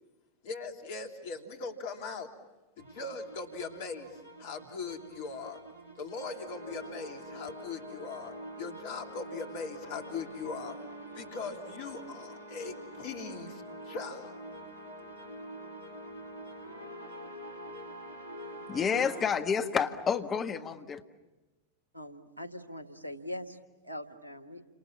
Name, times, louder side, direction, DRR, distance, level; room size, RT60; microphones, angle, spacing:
voice 1, 0.4-2.3 2.8-5.6 6.0-10.8 11.1-14.4, left 4 dB, 50° left, 3 dB, 3.1 m, -40 dB
sound 1, 2.8-19.4, right 1 dB, 80° left, 3.5 m, -46 dB
voice 2, 18.7-21.0, left 6 dB, 25° left, 6 dB, 1.6 m, -29 dB
voice 3, 21.9-23.6 23.8-24.6, left 1 dB, 85° right, 8 dB, 1.7 m, -42 dB
29.5 x 27.0 x 7.3 m, 1.1 s
figure-of-eight pair, 90°, 0 cm